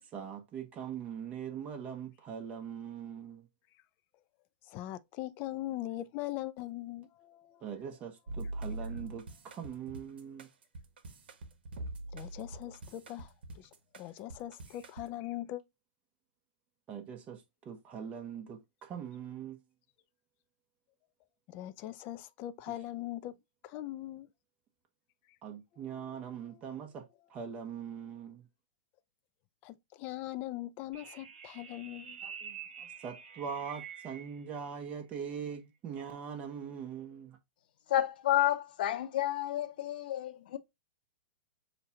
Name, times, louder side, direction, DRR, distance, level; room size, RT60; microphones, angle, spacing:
voice 1, 0.1-3.5 7.6-10.5 16.9-19.6 25.4-27.0 27.3-28.5 32.2-37.4, right 7 dB, 25° right, 1.2 m, -42 dB
voice 2, 4.6-7.6 12.1-15.6 21.5-23.3 23.6-24.3 26.5-26.6 29.6-32.2, left 14 dB, 35° left, 0.5 m, -41 dB
sound 1, 8.3-15.1, right 2 dB, 80° right, 1.0 m, -43 dB
sound 2, 30.9-34.4, right 7 dB, 60° right, 1.9 m, -47 dB
voice 3, 37.9-40.6, left 13 dB, 65° left, 0.8 m, -30 dB
6.4 x 2.4 x 2.8 m
hypercardioid pair, 135°, 5 cm